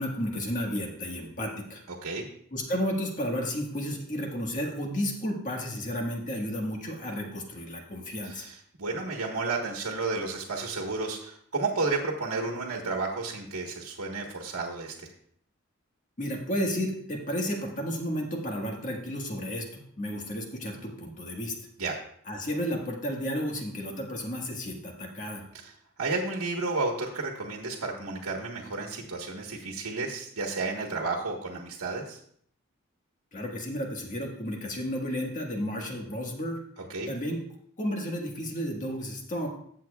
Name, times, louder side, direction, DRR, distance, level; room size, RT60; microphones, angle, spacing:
voice 1, 0.0-1.8 2.5-8.5 16.2-21.5 22.3-25.5 33.3-36.6 37.1-37.4 37.8-39.5, equal, 35° left, 0 dB, 1.6 m, -32 dB
voice 2, 1.9-2.3 8.2-15.1 21.8-22.0 25.5-25.7 26.0-32.2 36.8-37.1, right 3 dB, 80° right, 0 dB, 1.4 m, -32 dB
15.0 x 7.4 x 2.4 m, 0.65 s
head